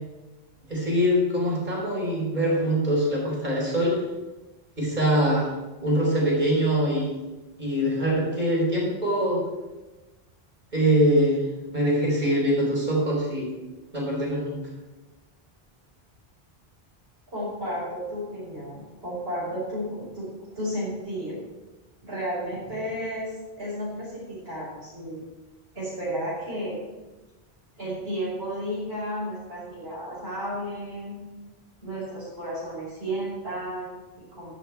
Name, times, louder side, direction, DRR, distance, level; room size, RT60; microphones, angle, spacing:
voice 1, 0.7-4.0 4.8-5.5 5.8-7.1 7.6-9.4 10.7-11.4 11.7-13.5 13.9-14.6, equal, 45° right, -4 dB, 4.6 m, -23 dB
voice 2, 17.3-20.3 20.5-21.4 22.0-23.3 23.6-25.2 25.7-26.8 27.8-31.2 31.8-34.5, equal, 70° right, -10 dB, 5.9 m, -33 dB
14.0 x 10.0 x 4.7 m, 1.1 s
omnidirectional pair, 1.1 m